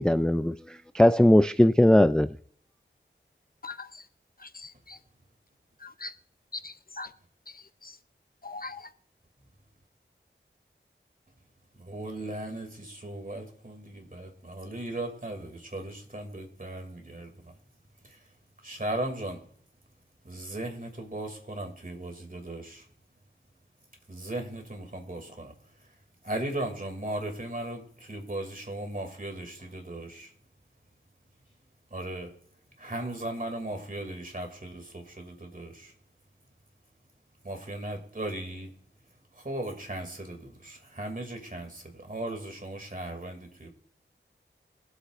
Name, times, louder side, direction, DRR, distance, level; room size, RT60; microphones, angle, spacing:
voice 1, 0.0-2.3, left 1 dB, 5° left, 0.4 m, -20 dB
voice 2, 3.6-4.1 4.4-5.0 5.8-6.1 6.5-7.1 7.5-8.0 8.4-8.9, left 3 dB, 45° left, 0.7 m, -41 dB
voice 3, 11.8-17.5 18.6-19.4 20.2-22.8 24.1-25.5 26.2-30.3 31.9-32.3 32.8-35.9 37.4-38.7 39.4-43.7, right 1 dB, 45° right, 2.6 m, -37 dB
23.5 x 8.0 x 2.5 m
wide cardioid pair, 50°, 20 cm